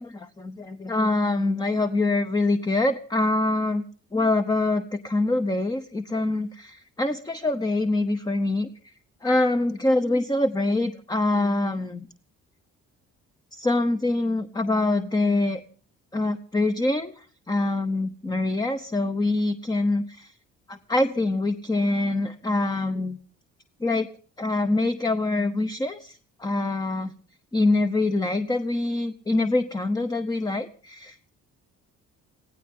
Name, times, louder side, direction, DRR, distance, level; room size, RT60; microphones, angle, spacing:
voice 1, 0.0-3.8 4.1-8.7 9.2-12.1 13.5-15.6 16.1-20.3 20.7-23.2 23.8-24.1 24.4-27.1 27.5-31.3, left 2 dB, 15° left, 10 dB, 0.8 m, -25 dB
23.5 x 16.5 x 3.7 m, 0.43 s
cardioid pair, 90°, 30 cm